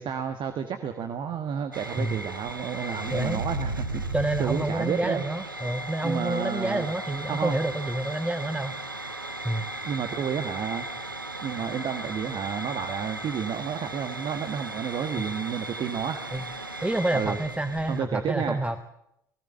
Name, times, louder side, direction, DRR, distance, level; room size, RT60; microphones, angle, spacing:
voice 1, 0.0-4.0 4.4-5.2 6.0-6.9 7.3-7.6 9.8-10.9 11.4-16.3 17.1-17.4 17.9-18.6, right 7 dB, 50° right, 8 dB, 1.5 m, -31 dB
sound 1, 1.7-18.0, right 2 dB, 90° right, 0.8 m, -36 dB
voice 2, 3.1-3.4 4.1-8.8 9.4-9.7 15.2-15.3 16.3-16.5 16.8-18.8, right 1 dB, 10° right, 10 dB, 1.1 m, -28 dB
19.5 x 17.5 x 8.8 m, 0.80 s
figure-of-eight pair, 50°, 11 cm